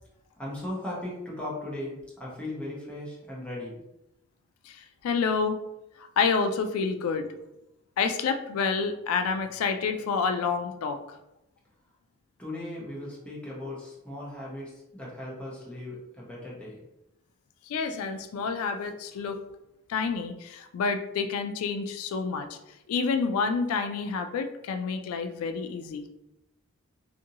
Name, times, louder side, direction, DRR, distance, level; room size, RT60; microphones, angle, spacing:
voice 1, 0.4-3.8 12.4-16.8, left 1 dB, 5° left, -6 dB, 0.8 m, -37 dB
voice 2, 4.7-5.6 6.0-7.3 8.0-11.0 17.7-19.4 19.9-22.5 22.9-26.0, left 5 dB, 90° left, 11 dB, 0.3 m, -28 dB
2.6 x 2.6 x 2.7 m, 0.89 s
head